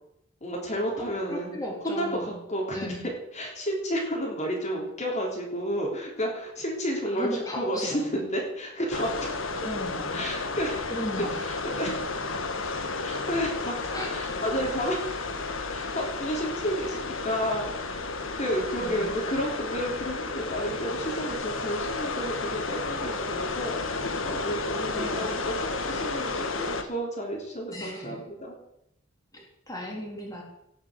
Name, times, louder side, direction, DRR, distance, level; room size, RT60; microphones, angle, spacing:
voice 1, 0.4-1.6 1.8-2.9 3.3-9.3 10.1-10.9 11.4-12.0 13.0-13.8 14.1-15.1 15.7-18.0 18.4-28.6, equal, 35° left, -1 dB, 3.6 m, -31 dB
voice 2, 1.0-2.4 2.7-3.0 7.1-8.3 9.5-10.1 10.9-11.3 13.9-14.2 18.8-19.2 24.9-25.3 27.7-28.2 29.3-30.4, equal, 20° left, -2 dB, 3.7 m, -36 dB
sound 1, 8.9-26.8, left 3 dB, 85° left, 1.6 m, -32 dB
17.5 x 7.2 x 8.1 m, 0.78 s
head